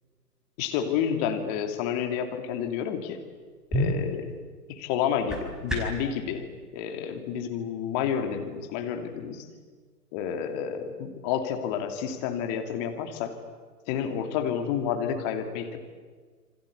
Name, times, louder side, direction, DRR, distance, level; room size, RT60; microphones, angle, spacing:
voice 1, 0.6-3.2 3.7-4.4 4.7-6.5 6.7-9.5 10.1-13.3 13.9-15.8, left 8 dB, 25° left, 5 dB, 2.9 m, -30 dB
sound 1, 3.3-6.1, equal, ahead, 5.1 m, -32 dB
28.0 x 25.0 x 8.5 m, 1.5 s
figure-of-eight pair, 135°, 50 cm